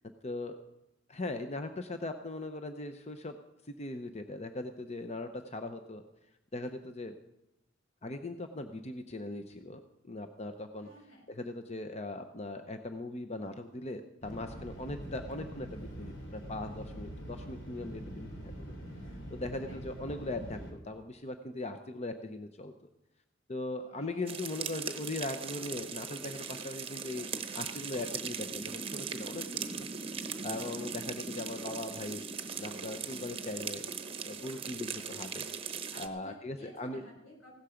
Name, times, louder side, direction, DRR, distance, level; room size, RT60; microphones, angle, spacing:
voice 1, 0.2-0.6 1.1-3.4 3.6-6.0 6.5-7.1 8.0-9.8 10.1-10.9 11.3-18.3 19.1-22.7 23.5-27.3 27.5-29.9 30.4-32.2 32.6-33.9 34.2-35.5 36.0-37.0, left 2 dB, 35° left, 7 dB, 0.7 m, -39 dB
voice 2, 10.8-11.3 19.6-19.8 23.8-24.4 35.9-37.5, equal, 85° left, -1 dB, 6.1 m, -54 dB
sound 1, 14.2-20.7, equal, 65° left, 3.3 m, -44 dB
sound 2, 24.3-36.1, right 6 dB, 30° right, 1.0 m, -39 dB
16.0 x 12.5 x 5.1 m, 0.89 s
head